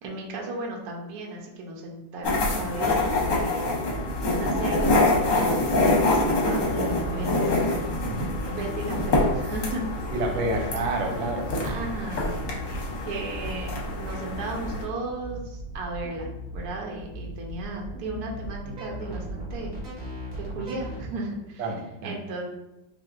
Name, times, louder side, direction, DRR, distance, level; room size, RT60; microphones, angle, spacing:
voice 1, 0.0-3.1 3.3-3.6 4.2-5.8 6.1-7.9 8.5-10.7 11.6-12.4 13.1-19.7 20.4-21.7 22.0-22.4, right 2 dB, 65° right, 0 dB, 1.2 m, -35 dB
sound 1, 2.2-14.8, left 2 dB, 55° left, 1.0 m, -26 dB
sound 2, 3.6-21.0, right 1 dB, 30° right, 1.0 m, -37 dB
voice 2, 10.1-11.7 21.6-22.1, right 2 dB, 85° right, 1 dB, 1.4 m, -29 dB
5.4 x 2.6 x 2.4 m, 0.96 s
omnidirectional pair, 2.0 m